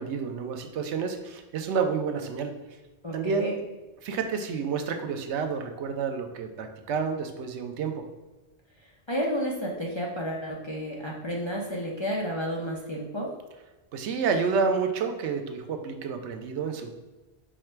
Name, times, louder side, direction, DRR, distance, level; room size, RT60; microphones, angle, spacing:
voice 1, 0.0-2.5 3.1-3.6 4.0-7.9 13.9-16.9, right 5 dB, 90° right, 6 dB, 0.9 m, -29 dB
voice 2, 3.0-3.6 9.1-13.3, equal, 35° left, -3 dB, 0.4 m, -31 dB
4.8 x 2.2 x 4.4 m, 1.2 s
omnidirectional pair, 1.1 m